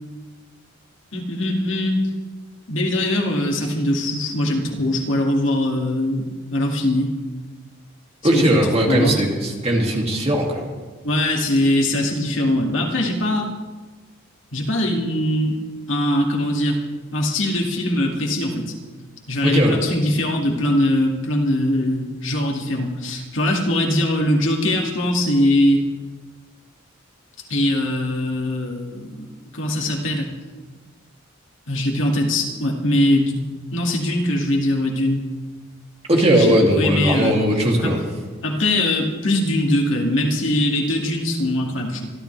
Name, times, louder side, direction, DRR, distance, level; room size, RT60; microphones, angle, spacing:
voice 1, 1.1-2.0 2.7-7.1 8.3-8.5 8.9-9.2 11.0-13.5 14.5-15.6 15.9-16.8 17.1-18.7 19.3-25.8 27.5-29.3 29.5-30.3 31.7-33.4 33.7-35.2 36.1-37.4 37.8-37.9 38.4-42.1, left 1 dB, 70° left, 0 dB, 2.4 m, -21 dB
voice 2, 8.2-10.7 19.4-19.8 36.1-38.0, right 1 dB, 30° right, -1 dB, 2.6 m, -18 dB
25.5 x 12.5 x 3.4 m, 1.3 s
head